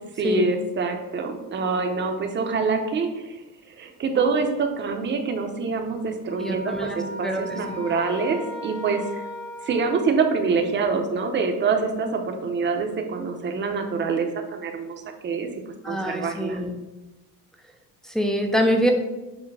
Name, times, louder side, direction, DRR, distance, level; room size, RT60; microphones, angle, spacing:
voice 1, 0.2-3.4 3.7-9.2 9.6-14.9 15.2-15.5 15.8-16.6, right 4 dB, 30° right, 4 dB, 0.7 m, -25 dB
sound 1, 6.3-10.7, left 1 dB, 30° left, 0.7 m, -37 dB
voice 2, 6.4-7.8 15.8-16.8 18.1-18.9, equal, ahead, 2 dB, 0.4 m, -25 dB
7.4 x 2.8 x 4.7 m, 1.1 s
cardioid pair, 155°, 38 cm